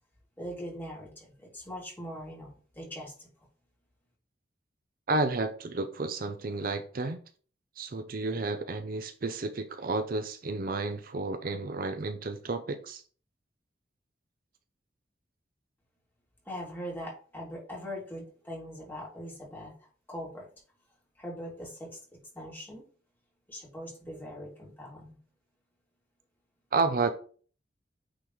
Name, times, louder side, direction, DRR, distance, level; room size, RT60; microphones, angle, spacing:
voice 1, 0.4-3.3 16.4-20.5 21.2-22.0 22.3-22.8 23.5-25.2, equal, 10° left, 2.7 m, -41 dB
voice 2, 5.1-7.2 7.8-13.0 26.7-27.1, right 3 dB, 55° right, 0.6 m, -31 dB
8.9 x 3.9 x 3.1 m
head